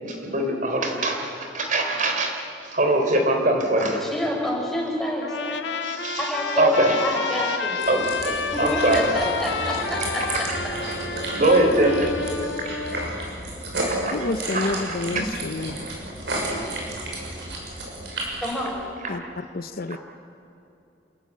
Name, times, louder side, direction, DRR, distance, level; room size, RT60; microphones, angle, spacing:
voice 1, 0.0-2.4 2.7-4.0 5.8-6.3 6.6-7.1 7.4-7.6 7.9-9.1 10.3-10.4 11.3-12.1 12.6-13.0 13.8-15.3 19.0-19.2 19.9-20.0, right 1 dB, 45° right, 3 dB, 3.4 m, -23 dB
voice 2, 4.0-5.6 6.2-7.8 8.5-10.2 18.4-18.8, left 1 dB, ahead, -2 dB, 5.2 m, -28 dB
Trumpet, 5.2-13.1, left 5 dB, 90° left, 1.4 m, -30 dB
sound 1, 7.8-18.6, right 1 dB, 70° right, 6.5 m, -32 dB
voice 3, 14.1-15.8 19.1-20.0, left 2 dB, 55° left, 11 dB, 0.7 m, -29 dB
28.0 x 14.5 x 9.5 m, 2.8 s
head